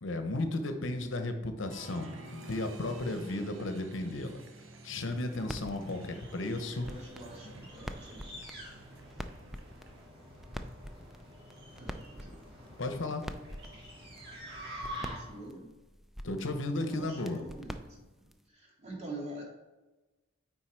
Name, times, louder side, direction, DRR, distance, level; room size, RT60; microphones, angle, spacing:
voice 1, 0.0-4.4 4.8-6.9 12.8-13.3 16.2-17.4, left 2 dB, 70° left, 7 dB, 0.8 m, -34 dB
Applause, 1.7-10.0, right 2 dB, 70° right, 0.8 m, -52 dB
sound 1, 5.1-18.5, equal, ahead, 0.3 m, -47 dB
sound 2, 5.7-15.5, equal, 55° right, 2.2 m, -47 dB
voice 2, 6.7-8.2 11.8-12.4 15.0-15.8 16.8-19.4, right 2 dB, 35° right, -2 dB, 2.1 m, -45 dB
9.0 x 3.9 x 4.5 m, 1.1 s
head